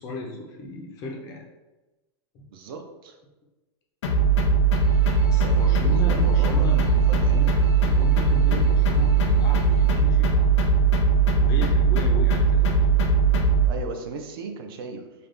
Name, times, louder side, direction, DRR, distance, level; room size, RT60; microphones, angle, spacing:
voice 1, 0.0-1.5 2.3-2.4 5.0-10.7 11.4-12.8, left 2 dB, 25° left, 1 dB, 0.3 m, -35 dB
voice 2, 2.5-3.2 5.4-7.6 13.7-15.1, right 4 dB, 55° right, 5 dB, 0.4 m, -37 dB
sound 1, 4.0-13.7, right 4 dB, 90° left, 0.5 m, -19 dB
sound 2, 4.7-10.0, right 1 dB, 30° right, 1.2 m, -46 dB
3.3 x 2.1 x 2.5 m, 1.1 s
supercardioid pair, 165°, 14 cm